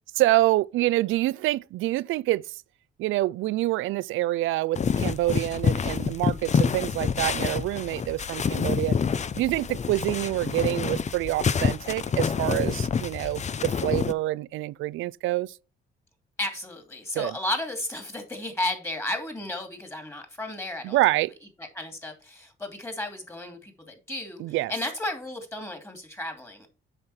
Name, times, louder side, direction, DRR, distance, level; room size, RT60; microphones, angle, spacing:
voice 1, 0.2-2.6 3.0-9.0 9.4-15.5 17.1-17.3 20.8-21.3 24.4-24.7, right 17 dB, 85° right, 0.4 m, -26 dB
sound 1, 4.8-14.1, left 6 dB, 35° left, 0.6 m, -27 dB
voice 2, 16.4-21.0 21.6-26.7, left 1 dB, 15° left, 2.7 m, -33 dB
8.0 x 5.7 x 4.3 m
cardioid pair, 90°, 20 cm